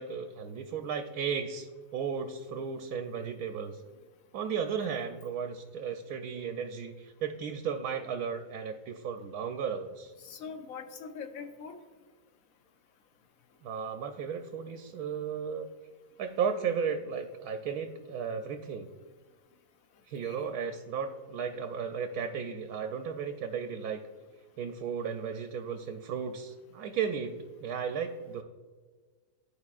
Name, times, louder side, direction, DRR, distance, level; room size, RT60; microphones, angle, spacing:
voice 1, 0.0-1.7 1.9-3.8 4.3-10.1 13.6-15.7 16.2-18.9 20.1-24.0 24.6-28.4, right 6 dB, 80° right, 6 dB, 1.1 m, -35 dB
voice 2, 10.2-11.8 20.2-20.6, left 5 dB, 65° left, 6 dB, 1.1 m, -43 dB
13.0 x 4.8 x 2.4 m, 1.5 s
omnidirectional pair, 1.6 m